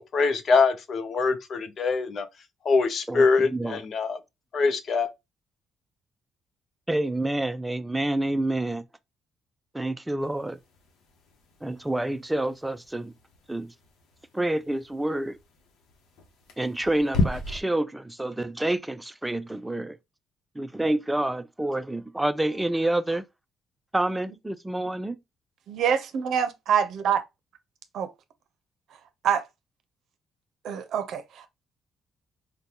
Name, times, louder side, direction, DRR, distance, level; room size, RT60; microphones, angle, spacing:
voice 1, 0.0-2.3 2.6-4.2 4.5-5.1, left 4 dB, 55° left, 0.6 m, -23 dB
voice 2, 3.1-3.8 6.9-8.8 9.7-10.6 11.6-13.1 13.5-13.7 14.3-15.4 16.6-20.0 20.6-23.2 23.9-25.2, right 1 dB, 10° right, 0.4 m, -28 dB
sound 1, 10.2-17.6, left 2 dB, 85° left, 0.8 m, -35 dB
voice 3, 25.7-27.2 27.9-28.1 29.2-29.4 30.6-31.5, right 8 dB, 75° right, 0.6 m, -25 dB
3.9 x 2.2 x 2.8 m
cardioid pair, 90°, 0 cm